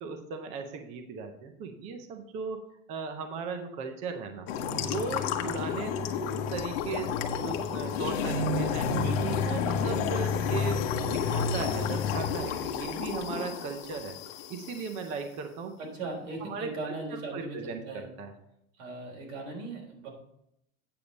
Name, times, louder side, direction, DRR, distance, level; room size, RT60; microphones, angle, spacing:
voice 1, 0.0-2.6 2.9-4.5 4.8-6.0 6.5-8.9 9.2-14.2 14.5-15.7 16.4-18.3, right 5 dB, 20° right, 6 dB, 0.5 m, -37 dB
sound 1, 4.5-14.9, left 5 dB, 50° left, 0.9 m, -30 dB
voice 2, 8.9-9.4 15.8-18.1 18.8-20.1, right 2 dB, 90° right, 0 dB, 3.7 m, -39 dB
8.5 x 6.9 x 3.9 m, 0.78 s
supercardioid pair, 165°, 38 cm